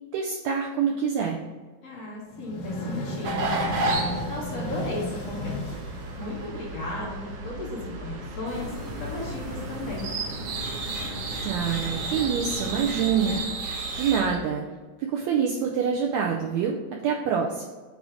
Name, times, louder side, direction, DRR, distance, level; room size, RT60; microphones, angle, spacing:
voice 1, 0.1-1.4 11.4-14.6 15.0-17.7, right 7 dB, 90° right, 0 dB, 1.5 m, -26 dB
voice 2, 1.8-3.6 4.2-5.6 6.2-8.7 9.0-10.1, left 2 dB, 50° left, -6 dB, 2.5 m, -35 dB
sound 1, 2.3-6.8, left 1 dB, 70° left, 2.1 m, -34 dB
sound 2, 3.2-14.4, right 2 dB, 70° right, 1.4 m, -33 dB
sound 3, 8.4-13.5, equal, 50° right, 1.5 m, -38 dB
7.9 x 2.7 x 4.8 m, 1.4 s
omnidirectional pair, 3.7 m